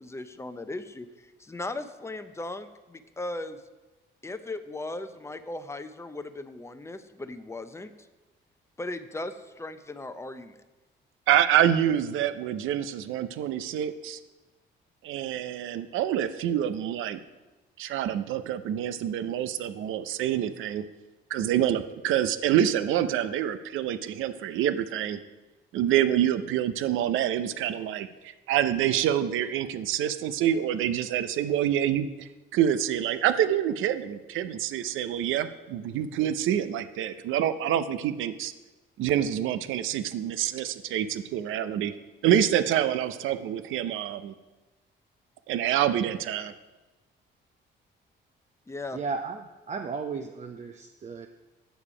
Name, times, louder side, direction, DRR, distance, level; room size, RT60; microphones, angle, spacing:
voice 1, 0.0-3.6 4.2-7.9 8.8-10.6 48.7-49.0, left 2 dB, 15° left, 10 dB, 0.6 m, -37 dB
voice 2, 11.3-14.2 15.0-17.2 17.8-20.8 21.3-25.2 25.7-38.5 39.0-41.9 42.2-44.3 45.5-46.5, right 10 dB, 85° right, 12 dB, 0.5 m, -26 dB
voice 3, 48.9-49.4 49.7-51.3, right 4 dB, 35° right, 5 dB, 0.5 m, -34 dB
9.1 x 6.7 x 4.9 m, 1.1 s
cardioid pair, 90°, 20 cm